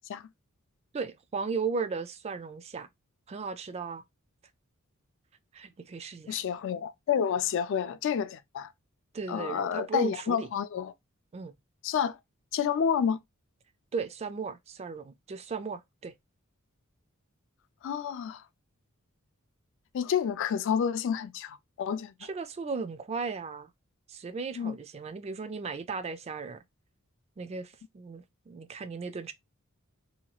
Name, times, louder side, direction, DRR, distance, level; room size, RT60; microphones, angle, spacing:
voice 1, 0.9-2.9 3.3-4.0 5.5-6.4 9.1-10.5 11.3-11.5 13.9-16.1 22.2-23.7 24.1-26.6 27.4-29.3, right 4 dB, 30° right, 0.3 m, -36 dB
voice 2, 6.3-8.7 9.3-10.9 11.8-12.2 12.5-13.2 17.8-18.4 19.9-22.3 24.6-24.8, left 7 dB, 60° left, 0.3 m, -29 dB
2.8 x 2.3 x 2.9 m
head